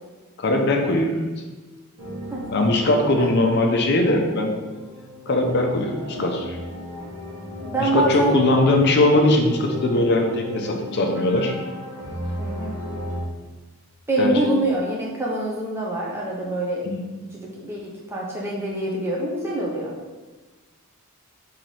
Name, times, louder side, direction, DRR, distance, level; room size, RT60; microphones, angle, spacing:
voice 1, 0.4-1.2 2.5-4.5 5.3-6.6 7.8-11.5 14.2-14.5 16.8-17.0, left 2 dB, 50° left, 3 dB, 0.5 m, -20 dB
sound 1, 2.0-13.2, left 1 dB, 65° right, 1.0 m, -35 dB
voice 2, 7.6-8.4 12.4-12.8 14.1-16.8 17.3-19.9, right 1 dB, 10° right, -4 dB, 0.5 m, -25 dB
3.1 x 2.8 x 4.0 m, 1.2 s
head